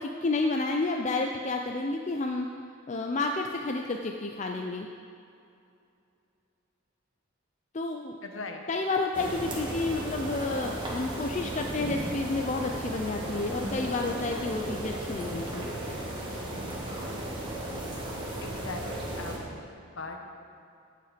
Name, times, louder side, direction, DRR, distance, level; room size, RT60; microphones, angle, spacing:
voice 1, 0.0-2.5 2.9-4.9 7.7-8.2 8.7-15.7, left 3 dB, 35° left, 3 dB, 0.4 m, -30 dB
voice 2, 8.2-8.6 18.4-19.7 20.0-20.3, left 3 dB, 70° left, 3 dB, 1.1 m, -40 dB
sound 1, 9.1-19.4, right 1 dB, 25° right, 1.8 m, -35 dB
15.5 x 5.7 x 5.0 m, 2.6 s
head